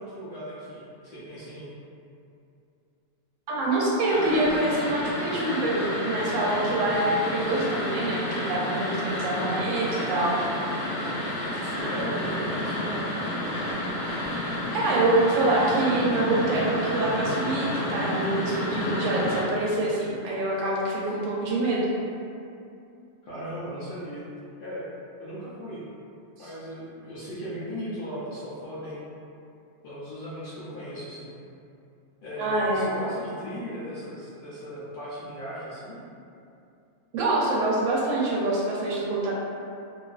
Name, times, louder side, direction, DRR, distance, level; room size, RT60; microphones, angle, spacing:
voice 1, 0.0-1.7 11.4-13.1 23.2-24.2 24.6-24.9 25.2-25.8 26.4-29.0 29.8-31.3 32.2-36.0, equal, 60° left, -9 dB, 0.6 m, -37 dB
voice 2, 3.5-10.4 14.7-21.9 26.4-26.5 32.4-32.8 37.1-39.3, right 2 dB, 80° right, -5 dB, 1.0 m, -25 dB
sound 1, 4.1-19.4, left 1 dB, 90° left, 1.0 m, -30 dB
2.5 x 2.3 x 2.3 m, 2.6 s
omnidirectional pair, 1.3 m